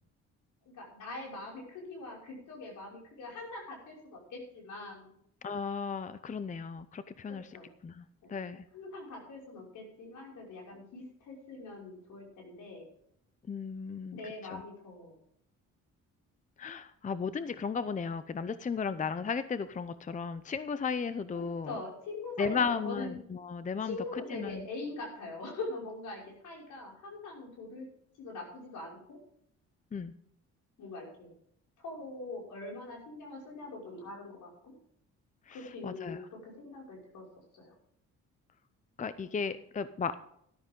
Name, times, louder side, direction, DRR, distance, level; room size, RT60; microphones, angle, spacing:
voice 1, 0.7-5.1 7.3-7.7 8.2-8.3 8.7-12.9 14.1-15.2 21.3-23.2 23.8-27.9 28.2-29.2 30.8-31.3 31.8-34.7 35.5-37.2 37.5-37.7, left 2 dB, 80° left, -2 dB, 5.9 m, -43 dB
voice 2, 5.4-7.5 7.8-8.0 8.3-8.6 13.5-14.6 16.6-21.7 22.4-24.7 29.9-30.1 35.5-36.2 39.0-40.3, left 5 dB, 25° left, 13 dB, 0.6 m, -35 dB
13.5 x 12.5 x 3.8 m, 0.71 s
cardioid pair, 90°, 30 cm